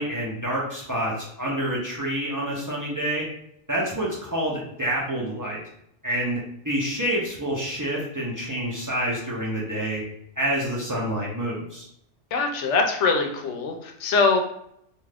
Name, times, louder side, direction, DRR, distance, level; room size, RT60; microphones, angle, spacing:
voice 1, 0.0-3.3 3.7-5.6 6.0-10.0 10.4-11.9, right 1 dB, 25° right, -4 dB, 0.5 m, -28 dB
voice 2, 12.3-14.4, left 4 dB, 75° left, 4 dB, 0.9 m, -22 dB
2.6 x 2.4 x 3.3 m, 0.73 s
omnidirectional pair, 1.2 m